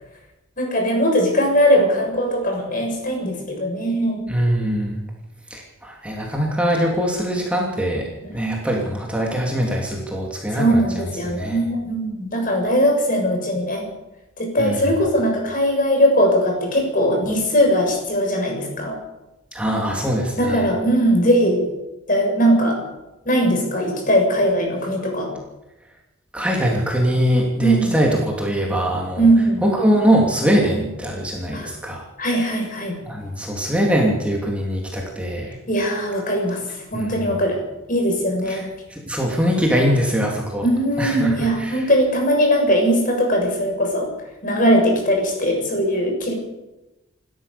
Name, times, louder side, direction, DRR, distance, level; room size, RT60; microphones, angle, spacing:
voice 1, 0.6-4.2 8.2-8.3 10.5-13.8 14.4-19.0 20.4-21.7 22.1-22.8 23.3-25.3 27.6-28.0 29.2-29.6 31.5-31.7 32.2-33.0 35.7-36.6 36.9-37.6 37.9-38.7 40.6-44.1 44.4-46.3, equal, 45° left, 2 dB, 7.0 m, -20 dB
voice 2, 4.3-5.0 5.5-8.1 8.3-11.0 11.3-11.6 14.6-14.9 19.5-20.7 26.3-29.3 29.6-32.0 33.1-35.6 36.9-37.2 38.5-38.6 38.9-40.7 41.0-41.8, equal, 5° right, -1 dB, 3.0 m, -22 dB
28.5 x 13.0 x 7.0 m, 0.99 s
head